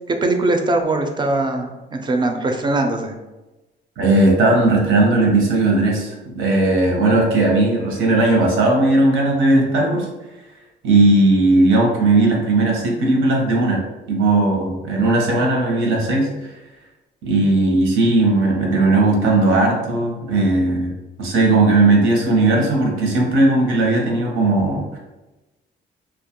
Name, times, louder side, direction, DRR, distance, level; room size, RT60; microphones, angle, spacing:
voice 1, 0.1-3.1, right 2 dB, 25° right, 4 dB, 0.3 m, -21 dB
voice 2, 4.0-10.1 10.8-13.8 14.1-16.5 17.2-20.9 21.2-25.0, right 2 dB, 85° right, -1 dB, 0.7 m, -17 dB
2.2 x 2.1 x 2.8 m, 1.1 s
cardioid pair, 90°, 20 cm